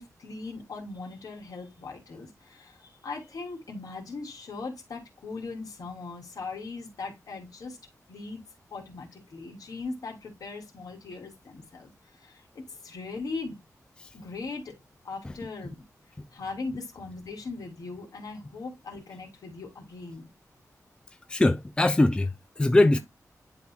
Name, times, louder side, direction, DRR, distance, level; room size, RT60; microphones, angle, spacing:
voice 1, 0.0-7.8 8.1-8.4 8.7-13.6 14.1-14.8 15.0-15.8 16.3-20.3 22.9-23.0, left 3 dB, 75° left, 3.1 m, -39 dB
voice 2, 21.3-23.0, left 2 dB, 15° left, 0.4 m, -22 dB
11.5 x 4.2 x 2.3 m
wide cardioid pair, 175°, 6 cm